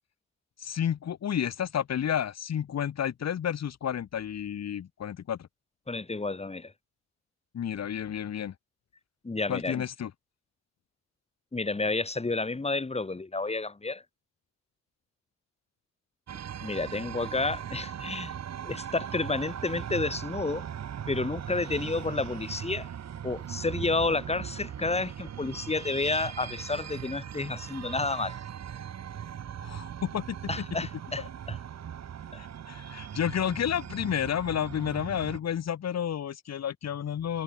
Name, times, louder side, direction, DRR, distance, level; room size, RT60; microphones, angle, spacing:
voice 1, 0.6-5.5 7.5-8.5 9.5-10.1 29.6-30.4 32.4-37.4, left 9 dB, 60° left, 5.5 m, -31 dB
voice 2, 5.9-6.7 9.2-9.8 11.5-14.0 16.6-18.3 18.6-20.7 21.1-22.9 23.2-28.4 30.5-31.6 32.3-32.4, left 3 dB, 20° left, 5.3 m, -30 dB
sound 1, 16.3-35.4, right 9 dB, 60° right, 7.8 m, -39 dB
cardioid pair, 90°, 30 cm